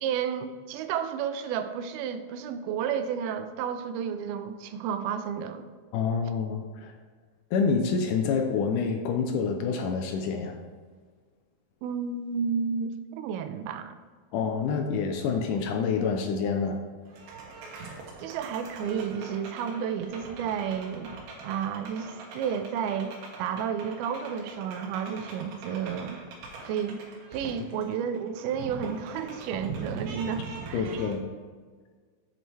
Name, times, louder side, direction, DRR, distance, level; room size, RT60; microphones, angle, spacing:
voice 1, 0.0-5.7 11.8-14.0 18.2-21.1 21.4-23.1 23.4-26.2 26.6-27.0 27.3-31.1, right 7 dB, 85° right, 9 dB, 2.5 m, -31 dB
voice 2, 5.9-6.9 7.5-10.6 14.3-16.8 30.7-31.2, left 5 dB, 80° left, 4 dB, 1.8 m, -27 dB
sound 1, 17.1-31.1, right 4 dB, 70° right, 2.7 m, -42 dB
7.9 x 7.6 x 3.3 m, 1.5 s
omnidirectional pair, 4.4 m